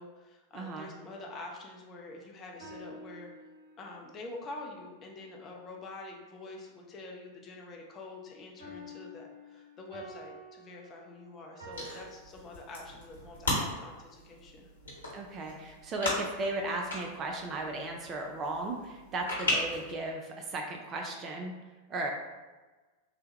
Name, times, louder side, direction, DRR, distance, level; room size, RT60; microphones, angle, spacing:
voice 1, 0.0-3.3 3.8-14.7, left 2 dB, 25° left, 0 dB, 0.6 m, -46 dB
voice 2, 0.5-0.9 15.1-21.6 21.9-22.1, right 2 dB, 30° right, 2 dB, 0.4 m, -36 dB
sound 1, 2.2-4.0 8.6-12.1, equal, 70° right, 0.9 m, -49 dB
sound 2, 11.7-19.9, left 1 dB, 75° left, 1.1 m, -37 dB
3.3 x 2.2 x 2.9 m, 1.3 s
figure-of-eight pair, 90°, 0 cm